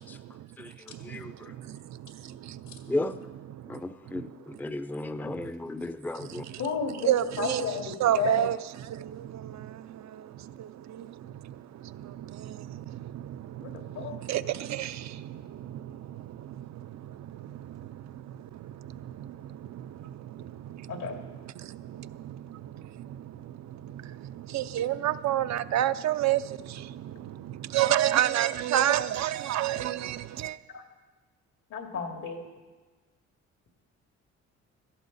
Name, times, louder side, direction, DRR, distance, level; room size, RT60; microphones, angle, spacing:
voice 1, 0.1-0.5 0.9-2.9 3.5-4.3 5.2-5.5 6.2-6.6 7.1-7.6 8.0-8.6 8.9-30.6, right 12 dB, 65° right, 0.6 m, -32 dB
voice 2, 0.6-1.5 2.9-3.1 3.7-6.4, left 2 dB, 5° left, 0.5 m, -34 dB
voice 3, 6.6-8.5 13.6-14.2 20.9-21.2 30.7-30.8 31.7-32.4, left 5 dB, 80° left, 2.4 m, -32 dB
16.5 x 14.0 x 4.1 m
cardioid pair, 90°, 30 cm